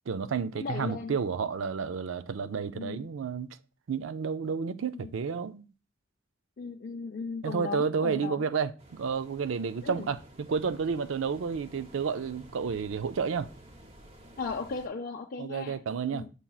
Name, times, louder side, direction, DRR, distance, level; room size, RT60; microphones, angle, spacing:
voice 1, 0.1-3.5 3.9-5.7 7.4-13.5 15.4-16.3, right 6 dB, 80° right, 0.4 m, -31 dB
voice 2, 0.6-1.2 2.7-3.1 4.8-5.3 6.6-8.5 9.8-10.1 14.4-15.8 16.1-16.3, left 4 dB, 45° left, 0.4 m, -37 dB
sound 1, 8.8-14.9, right 1 dB, 30° right, 1.0 m, -52 dB
7.3 x 6.8 x 2.3 m
head